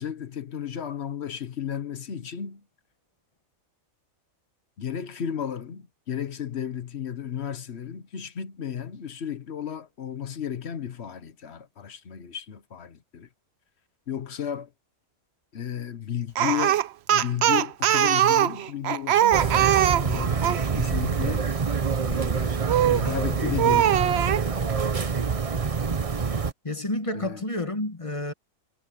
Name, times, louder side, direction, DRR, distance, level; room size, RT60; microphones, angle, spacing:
voice 1, 0.0-2.6 4.8-13.3 14.1-14.7 15.5-16.8 17.1-21.5 22.0-24.4 27.1-27.5, left 9 dB, 55° left, 1.2 m, -33 dB
Speech, 16.4-20.7 22.7-23.1 23.6-24.5, right 11 dB, 60° right, 0.8 m, -21 dB
sound 1, 19.3-26.5, right 5 dB, 30° right, 0.8 m, -26 dB
voice 2, 26.6-28.3, left 1 dB, 25° left, 1.3 m, -30 dB
omnidirectional pair, 1.4 m